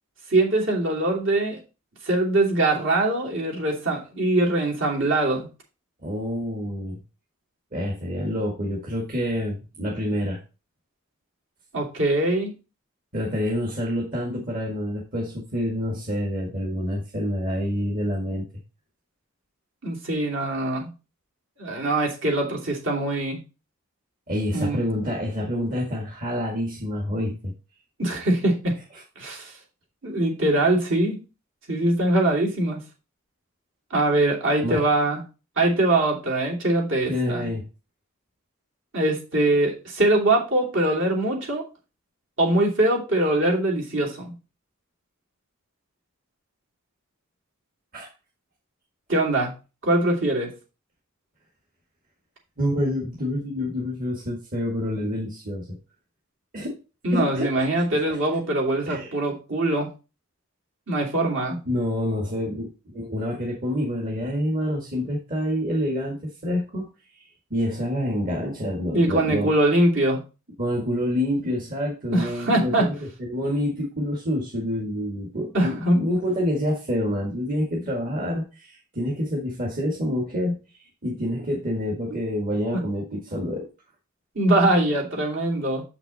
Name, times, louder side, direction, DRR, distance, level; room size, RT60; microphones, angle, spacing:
voice 1, 0.3-1.6 2.0-5.5 11.7-12.5 19.8-20.9 21.6-23.4 24.5-24.8 28.0-28.7 29.2-29.5 30.0-31.2 31.7-32.8 33.9-35.2 35.6-37.5 38.9-41.6 42.4-44.3 49.1-49.5 49.8-50.5 57.0-59.9 60.9-61.6 68.9-70.2 72.1-72.9 75.5-76.1 84.3-85.8, right 1 dB, 60° right, -1 dB, 3.0 m, -22 dB
voice 2, 6.0-7.0 7.7-10.4 13.1-18.5 24.3-27.5 28.9-29.0 34.6-34.8 37.1-37.7 47.9-48.1 52.6-55.8 56.5-56.8 57.1-58.0 58.9-59.1 61.7-62.7 62.9-66.9 67.1-67.2 67.5-69.5 70.6-72.9 73.2-83.7, equal, 40° right, -2 dB, 1.9 m, -27 dB
7.7 x 6.0 x 4.1 m, 0.31 s
head